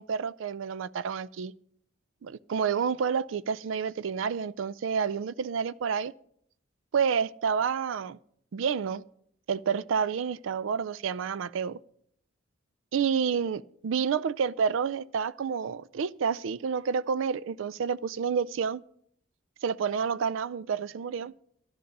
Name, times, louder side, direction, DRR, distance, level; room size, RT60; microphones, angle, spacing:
voice 1, 0.0-1.5 2.2-6.1 6.9-8.2 8.5-9.0 9.5-11.8 12.9-18.8 19.6-21.3, right 6 dB, 75° right, 0.4 m, -29 dB
12.0 x 10.5 x 5.3 m
head